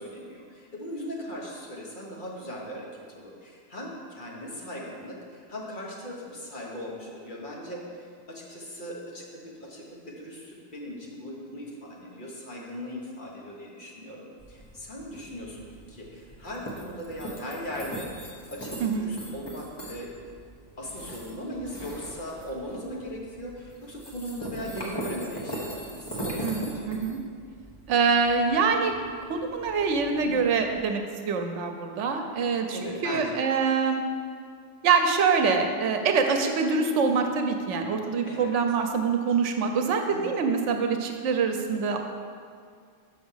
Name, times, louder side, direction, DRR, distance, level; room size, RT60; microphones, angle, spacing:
voice 1, 0.0-20.1 20.8-26.9 30.2-30.4 32.7-33.5 38.3-38.5 39.7-40.3, equal, 45° left, -3 dB, 1.2 m, -39 dB
sound 1, 14.4-30.8, right 1 dB, 20° left, 0.9 m, -40 dB
voice 2, 26.4-27.2 27.9-28.9 29.3-34.0 34.8-42.0, right 5 dB, 80° right, 5 dB, 1.0 m, -25 dB
6.0 x 5.8 x 5.5 m, 2.2 s
omnidirectional pair, 1.2 m